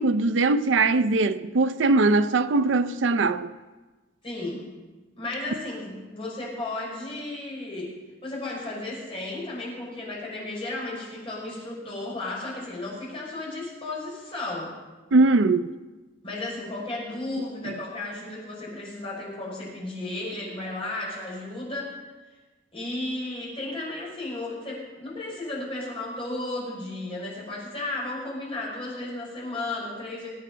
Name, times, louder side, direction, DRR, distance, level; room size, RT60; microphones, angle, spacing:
voice 1, 0.0-3.5 15.1-15.7 17.6-17.7, right 3 dB, 70° right, 0.5 m, -21 dB
voice 2, 4.2-4.7 5.2-7.9 8.2-14.8 16.2-21.9 22.7-30.3, left 2 dB, 30° left, 5.9 m, -34 dB
22.0 x 8.7 x 5.1 m
head